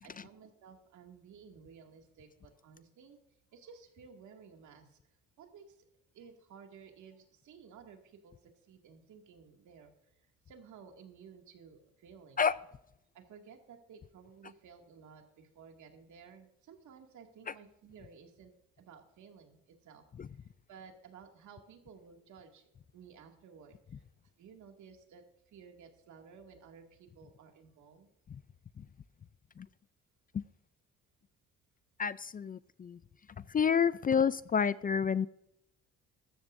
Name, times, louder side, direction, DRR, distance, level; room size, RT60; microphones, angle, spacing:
voice 1, 0.0-3.2 3.5-5.0 5.4-5.8 6.1-9.9 10.2-12.4 13.1-20.1 20.7-24.0 24.4-28.1, right 6 dB, 75° right, 3 dB, 2.3 m, -55 dB
voice 2, 32.0-33.0 33.4-35.3, left 7 dB, 30° left, 17 dB, 0.4 m, -29 dB
14.5 x 13.5 x 2.6 m, 0.82 s
cardioid pair, 90°, 30 cm